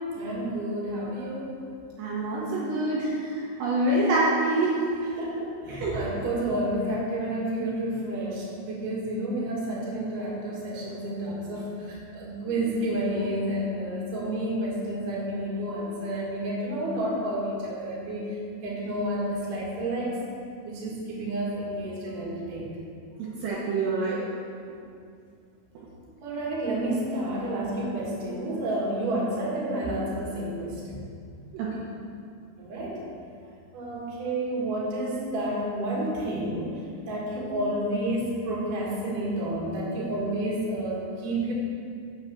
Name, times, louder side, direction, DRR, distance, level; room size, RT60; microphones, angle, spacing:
voice 1, 0.1-1.5 5.2-18.3 18.6-20.2 20.6-22.7 26.2-31.0 32.6-33.0 33.7-36.7 37.0-41.5, right 1 dB, 55° right, -5 dB, 3.0 m, -30 dB
voice 2, 2.0-3.1 3.6-4.8 5.7-6.0 23.4-24.2 31.5-31.7, right 2 dB, 75° right, -6 dB, 3.2 m, -25 dB
6.8 x 6.7 x 7.1 m, 2.4 s
omnidirectional pair, 5.4 m